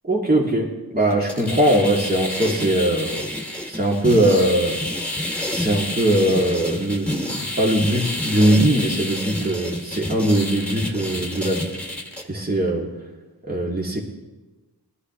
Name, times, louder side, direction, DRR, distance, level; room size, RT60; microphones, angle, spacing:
voice 1, 0.1-3.3 3.7-4.8 5.5-11.8 12.3-12.9 13.5-14.0, right 1 dB, 20° right, -4 dB, 2.8 m, -21 dB
sound 1, 1.1-12.2, left 1 dB, 5° left, 2.5 m, -29 dB
20.0 x 13.0 x 3.3 m, 1.2 s
cardioid pair, 45°, 41 cm